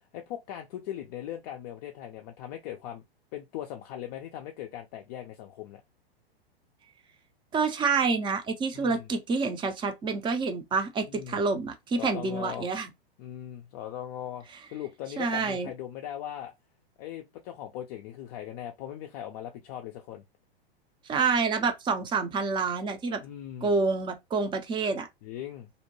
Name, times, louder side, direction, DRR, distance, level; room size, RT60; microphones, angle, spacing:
voice 1, 0.1-3.0 3.3-5.8 8.7-9.1 11.1-11.4 12.0-12.7 13.2-14.5 14.7-16.5 17.0-20.2 23.2-23.7 25.2-25.7, left 11 dB, 40° left, 0.4 m, -39 dB
voice 2, 7.5-12.9 15.2-15.7 21.1-23.2 23.6-25.1, right 4 dB, 15° right, 0.5 m, -28 dB
2.6 x 2.1 x 3.0 m
hypercardioid pair, 110°, 30 cm